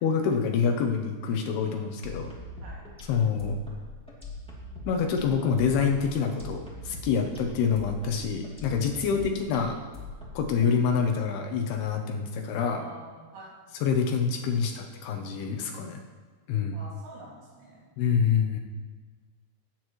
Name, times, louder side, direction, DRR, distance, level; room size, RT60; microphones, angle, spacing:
voice 1, 0.0-2.3 3.1-3.6 4.9-9.8 10.4-12.8 13.8-16.0 16.5-16.8 18.0-18.6, left 6 dB, 75° left, 3 dB, 2.5 m, -26 dB
sound 1, 2.0-10.7, left 2 dB, ahead, 1.5 m, -42 dB
voice 2, 8.9-9.4 12.6-13.5 16.7-17.9, right 2 dB, 85° right, -5 dB, 4.5 m, -46 dB
19.0 x 9.1 x 3.1 m, 1.4 s
omnidirectional pair, 5.1 m